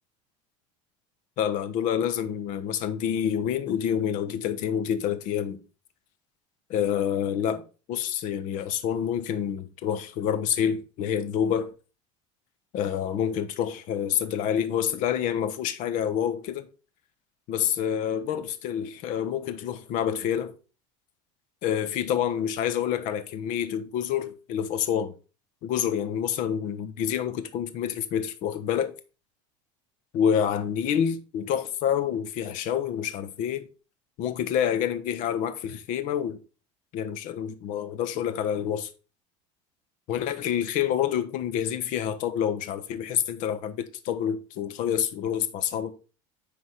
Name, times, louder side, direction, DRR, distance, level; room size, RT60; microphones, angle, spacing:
voice 1, 1.4-5.6 6.7-7.6 7.9-11.7 12.7-16.7 17.5-20.5 21.6-25.1 25.6-28.9 30.1-33.7 34.2-36.4 36.9-38.9 40.1-45.9, left 9 dB, 55° left, 1.2 m, -27 dB
10.0 x 3.9 x 4.9 m
supercardioid pair, 130°, 15 cm